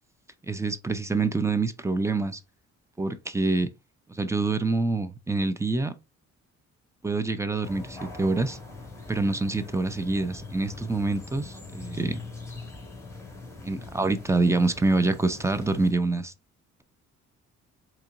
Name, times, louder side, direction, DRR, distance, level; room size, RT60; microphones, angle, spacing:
voice 1, 0.5-2.4 3.0-3.7 4.1-5.9 7.0-8.6 9.1-12.2 13.6-16.3, right 3 dB, 10° right, 0.5 m, -26 dB
sound 1, 7.6-15.9, left 3 dB, 10° left, 1.6 m, -42 dB
4.3 x 3.0 x 2.5 m
cardioid pair, 90°, 30 cm